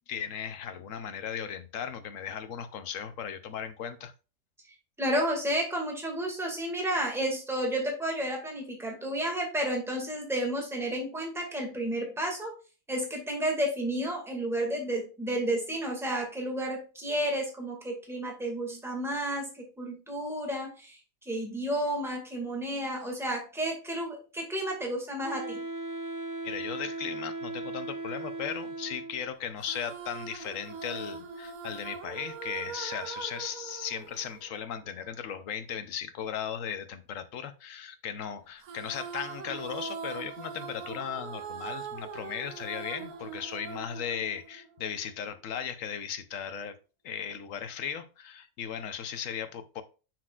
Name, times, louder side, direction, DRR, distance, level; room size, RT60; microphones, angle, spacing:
voice 1, 0.1-4.1 26.4-46.7 47.0-49.8, left 8 dB, 65° left, 1.1 m, -37 dB
voice 2, 5.0-12.5 12.9-21.0 21.3-25.6, right 1 dB, ahead, 2.0 m, -31 dB
Wind instrument woodwind instrument, 25.2-29.3, right 2 dB, 30° right, 0.4 m, -37 dB
sound 1, 29.6-35.1 38.6-45.0, right 6 dB, 90° right, 1.3 m, -41 dB
7.7 x 6.0 x 2.4 m
omnidirectional pair, 1.5 m